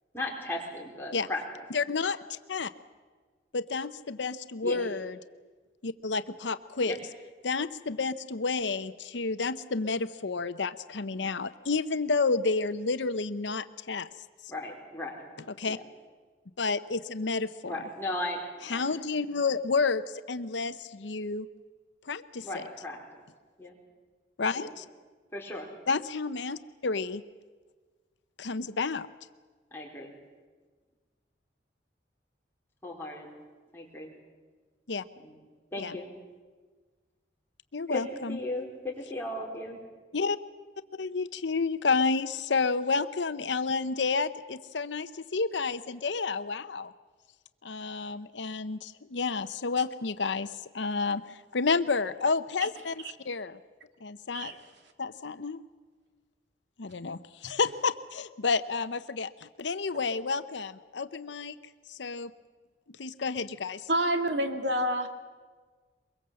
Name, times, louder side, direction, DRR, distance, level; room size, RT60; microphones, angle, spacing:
voice 1, 0.1-1.4 4.6-4.8 6.9-7.0 14.5-15.2 15.7-15.8 17.6-18.4 18.7-18.9 22.4-23.0 23.6-23.8 24.5-24.7 25.3-25.7 29.7-30.1 32.8-33.3 33.7-34.1 35.1-35.4 35.7-36.1 37.9-38.0 38.3-39.8, left 2 dB, 10° left, -2 dB, 4.6 m, -36 dB
voice 2, 1.7-2.7 3.5-5.2 5.8-6.9 7.4-14.1 15.6-15.8 16.6-17.8 18.7-21.5 22.1-22.6 24.4-24.8 25.9-27.2 28.4-29.1 34.9-35.0 35.8-36.0 37.7-38.4 40.1-40.4 41.0-46.9 47.6-52.9 53.2-53.6 54.0-54.5 55.0-55.6 56.8-61.6 61.9-62.3 63.0-63.9, left 4 dB, 80° left, 12 dB, 0.8 m, -30 dB
voice 3, 63.9-65.1, right 1 dB, 75° right, 6 dB, 2.2 m, -28 dB
23.5 x 22.5 x 7.7 m, 1.4 s
head